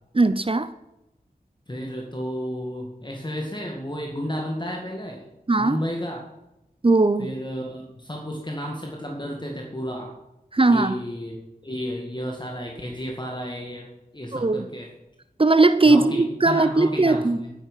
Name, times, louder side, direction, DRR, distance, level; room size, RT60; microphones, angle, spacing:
voice 1, 0.1-0.7 5.5-5.8 6.8-7.3 10.5-11.0 14.3-14.7 15.4-17.4, right 3 dB, 35° right, 13 dB, 0.7 m, -19 dB
voice 2, 1.7-5.3 5.6-6.2 7.2-10.1 10.7-11.4 11.6-14.9 15.9-17.5, equal, 30° left, 1 dB, 2.2 m, -32 dB
11.5 x 10.0 x 5.7 m, 0.92 s
wide cardioid pair, 50°, 16 cm